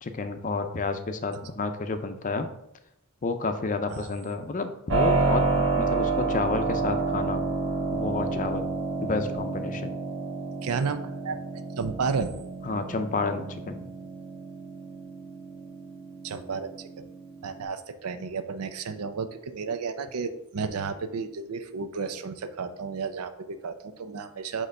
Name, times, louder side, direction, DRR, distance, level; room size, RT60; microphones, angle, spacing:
voice 1, 0.0-2.5 3.2-7.5 7.9-8.7 9.0-9.9 12.7-13.9, left 3 dB, 35° left, 8 dB, 0.5 m, -30 dB
Keyboard (musical), 4.9-17.6, right 4 dB, 65° right, 1.5 m, -30 dB
voice 2, 10.6-11.4 11.8-12.3 16.2-16.7 17.4-24.7, right 5 dB, 90° right, 9 dB, 0.5 m, -32 dB
6.5 x 3.0 x 5.3 m, 0.82 s
head